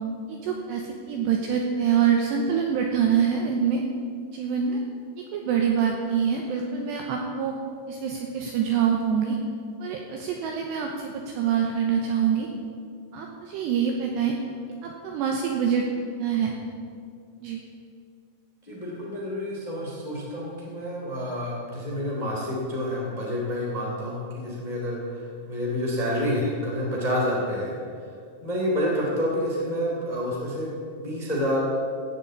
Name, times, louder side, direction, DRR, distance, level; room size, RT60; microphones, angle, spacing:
voice 1, 0.3-3.8 4.3-4.8 5.3-7.6 7.9-9.4 9.8-12.5 13.1-14.4 14.8-15.8 16.2-16.6 17.4-17.6, right 7 dB, 75° right, 1 dB, 2.6 m, -25 dB
voice 2, 18.6-27.7 28.4-31.6, equal, 15° left, -4 dB, 1.6 m, -28 dB
16.0 x 7.4 x 8.1 m, 2.3 s
omnidirectional pair, 5.9 m